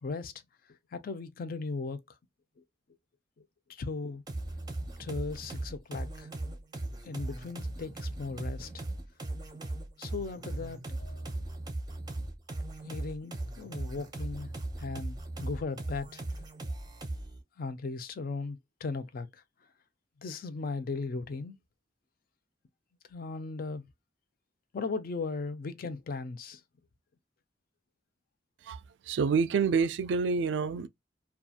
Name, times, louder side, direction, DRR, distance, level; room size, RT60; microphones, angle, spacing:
voice 1, 0.0-0.4 0.9-2.0 3.7-4.2 5.0-6.6 7.0-8.8 10.0-11.3 12.8-14.5 14.8-16.2 17.6-19.4 20.2-21.6 23.1-23.9 24.7-26.6, left 4 dB, 55° left, 0.4 m, -37 dB
sound 1, 4.3-17.4, right 2 dB, 20° right, 0.6 m, -38 dB
voice 2, 28.6-30.9, right 5 dB, 70° right, 0.3 m, -28 dB
2.7 x 2.3 x 2.4 m
head